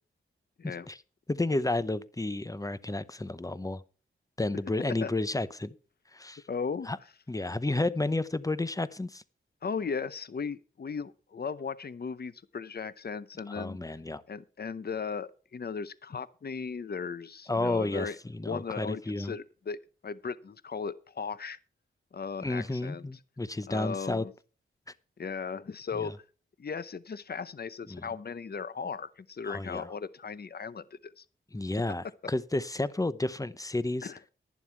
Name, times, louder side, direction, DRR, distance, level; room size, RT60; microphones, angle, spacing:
voice 1, 0.6-1.0 1.3-3.8 4.4-5.7 6.1-6.4 6.9-7.0 7.3-9.2 13.5-14.2 17.5-19.3 22.4-24.2 27.9-28.1 29.5-29.9 31.5-34.1, left 2 dB, 15° left, 0.8 m, -31 dB
voice 2, 6.5-6.9 9.6-13.8 14.3-18.2 18.4-19.8 20.0-21.6 22.1-23.1 23.7-24.3 25.2-26.1 26.6-31.2 34.0-34.2, left 5 dB, 50° left, 0.8 m, -37 dB
11.5 x 11.0 x 4.6 m
wide cardioid pair, 120°, 21 cm